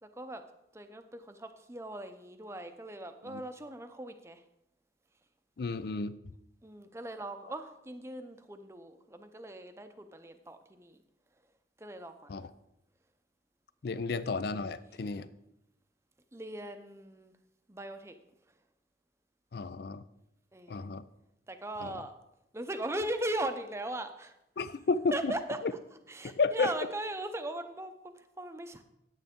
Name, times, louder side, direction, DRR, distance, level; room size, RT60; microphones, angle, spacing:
voice 1, 0.0-0.4 0.7-4.4 6.6-11.0 11.8-12.4 13.9-14.1 16.3-17.3 17.7-18.1 20.5-20.9 21.5-22.1 22.5-24.4 25.1-25.6 26.1-28.8, right 1 dB, 15° right, 8 dB, 0.6 m, -39 dB
voice 2, 5.6-6.1 12.3-12.5 13.8-15.3 19.5-20.0 20.7-21.0 21.8-21.9 24.6-25.3 26.4-26.7, left 4 dB, 60° left, 15 dB, 0.4 m, -32 dB
9.2 x 9.2 x 3.6 m, 0.84 s
head